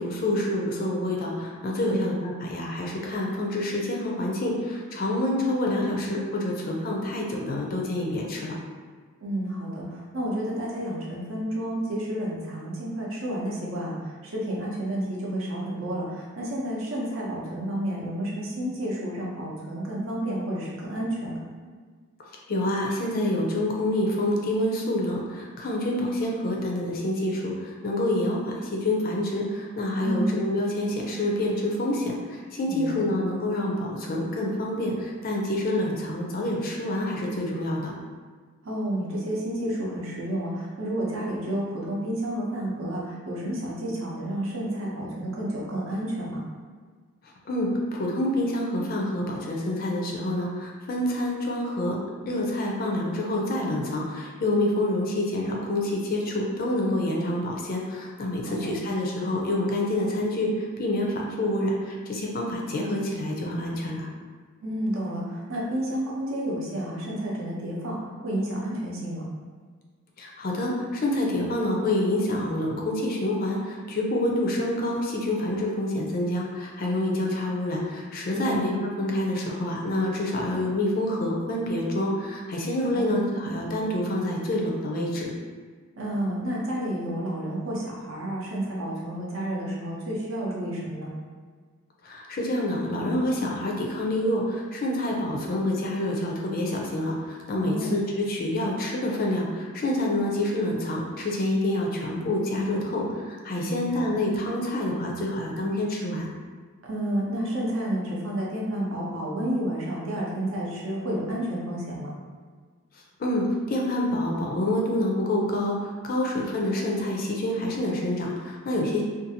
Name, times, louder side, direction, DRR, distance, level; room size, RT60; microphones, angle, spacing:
voice 1, 0.0-8.6 22.3-37.9 47.5-52.0 52.3-64.1 70.2-85.3 92.0-106.3 113.2-119.0, left 1 dB, 45° left, -1 dB, 0.4 m, -27 dB
voice 2, 9.2-21.4 30.0-30.3 32.7-33.0 38.6-46.4 58.4-58.7 64.6-69.2 78.3-78.6 82.9-83.2 86.0-91.1 97.6-97.9 103.6-104.0 106.8-112.1, right 1 dB, 65° right, -4 dB, 0.6 m, -30 dB
2.6 x 2.3 x 2.7 m, 1.5 s
head